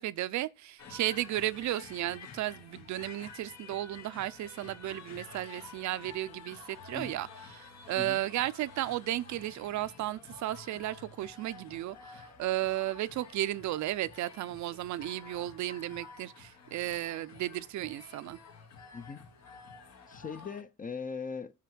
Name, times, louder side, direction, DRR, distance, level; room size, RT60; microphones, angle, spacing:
voice 1, 0.0-18.4, right 14 dB, 70° right, 0.6 m, -34 dB
sound 1, 0.8-20.6, left 5 dB, 60° left, 1.3 m, -51 dB
voice 2, 20.1-21.5, left 5 dB, 30° left, 0.6 m, -40 dB
5.8 x 4.7 x 6.1 m
cardioid pair, 90°, 30 cm